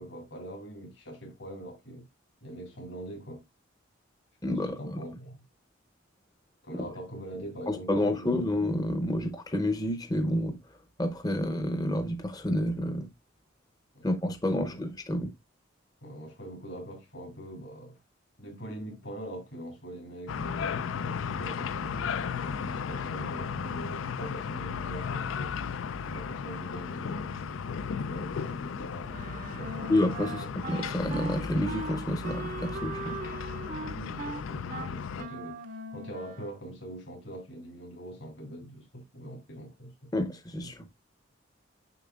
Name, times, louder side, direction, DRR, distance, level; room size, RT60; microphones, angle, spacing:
voice 1, 0.0-2.1 2.4-3.4 4.5-5.4 6.6-8.5 13.9-14.1 14.5-14.7 16.0-18.0 18.4-25.5 26.0-27.7 28.0-30.5 33.7-40.1, right 1 dB, 65° left, 2.3 m, -43 dB
voice 2, 4.4-5.0 7.7-10.6 11.0-13.1 14.0-15.3 29.9-33.2 40.1-40.9, left 1 dB, 20° left, 0.7 m, -29 dB
sound 1, 20.3-35.2, left 6 dB, 80° left, 0.4 m, -35 dB
Wind instrument woodwind instrument, 29.1-36.7, right 3 dB, 40° right, 0.6 m, -40 dB
6.9 x 5.8 x 2.3 m
head